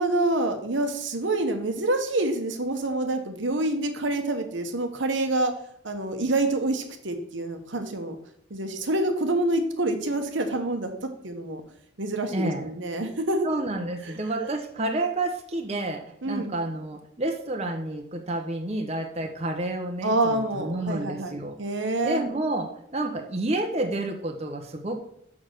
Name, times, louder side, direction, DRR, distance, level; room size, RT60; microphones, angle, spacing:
voice 1, 0.0-5.5 5.8-8.2 8.5-10.9 11.2-11.6 12.0-13.5 14.4-14.5 16.2-16.5 20.0-21.3 21.6-22.2, right 2 dB, 75° right, 6 dB, 1.2 m, -27 dB
voice 2, 12.3-12.7 13.4-21.6 22.0-25.0, right 2 dB, 35° right, 3 dB, 0.9 m, -30 dB
6.4 x 5.9 x 6.6 m, 0.73 s
head